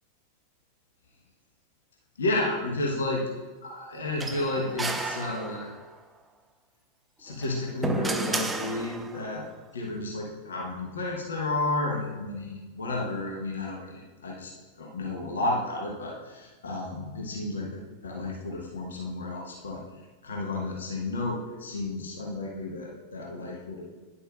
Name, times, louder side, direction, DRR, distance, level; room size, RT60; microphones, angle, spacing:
voice 1, 2.2-3.3 3.6-5.7 7.2-9.5 9.7-14.5 14.8-19.8 20.2-23.9, left 2 dB, 70° left, -2 dB, 1.2 m, -32 dB
sound 1, 4.2-5.9 7.3-9.3, right 3 dB, 10° right, 0.5 m, -32 dB
10.5 x 6.9 x 2.5 m, 1.3 s
figure-of-eight pair, 90°, 0 cm